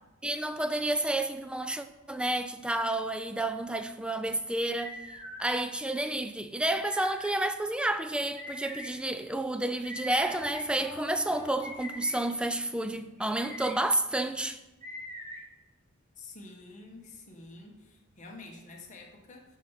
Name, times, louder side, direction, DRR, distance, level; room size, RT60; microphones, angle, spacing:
voice 1, 0.2-5.0 5.4-14.6, right 1 dB, 5° right, 0.3 m, -30 dB
sound 1, 4.7-5.5 6.7-7.3 8.3-8.9 9.8-10.6 11.6-12.2 13.2-13.7 14.8-15.4, left 1 dB, 35° right, 3.0 m, -42 dB
Piano, 10.3-12.8, left 1 dB, 10° left, 2.2 m, -45 dB
voice 2, 16.2-19.6, left 2 dB, 35° left, 1.3 m, -48 dB
6.1 x 5.8 x 5.8 m
head